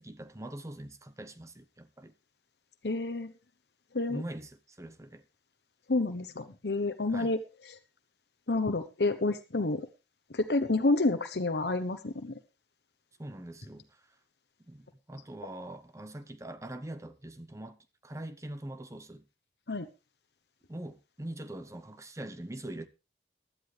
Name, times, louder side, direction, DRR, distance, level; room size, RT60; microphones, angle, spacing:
voice 1, 0.0-2.1 4.1-5.2 7.1-7.3 13.2-14.2 14.7-19.3 20.7-22.9, right 1 dB, 15° right, 0.9 m, -43 dB
voice 2, 2.8-3.3 3.9-4.2 5.9-7.4 7.7-7.8 8.5-9.8 10.3-12.3 19.7-19.9, left 2 dB, 70° left, 1.0 m, -29 dB
16.0 x 11.5 x 3.4 m
head